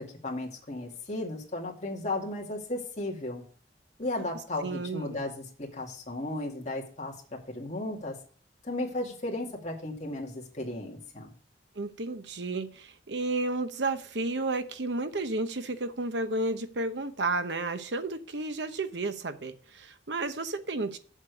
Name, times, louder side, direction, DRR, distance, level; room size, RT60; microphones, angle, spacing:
voice 1, 0.0-3.4 4.0-8.2 8.6-11.3, left 2 dB, 40° left, 2.3 m, -35 dB
voice 2, 4.6-5.2 11.8-21.0, right 2 dB, 75° right, 0.9 m, -32 dB
7.4 x 6.6 x 6.6 m
head